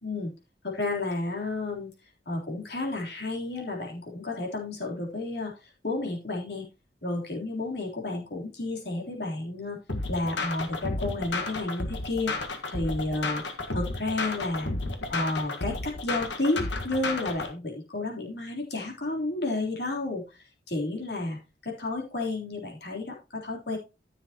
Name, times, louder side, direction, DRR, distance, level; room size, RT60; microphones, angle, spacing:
voice 1, 0.0-0.3 0.6-1.9 2.3-6.7 7.0-9.8 10.1-12.3 12.7-13.4 13.7-14.7 15.1-20.2 20.7-21.4 21.6-23.8, left 2 dB, 60° left, -1 dB, 3.5 m, -31 dB
sound 1, 9.9-17.5, left 3 dB, 80° left, 1.6 m, -32 dB
13.5 x 7.0 x 3.0 m, 0.28 s
head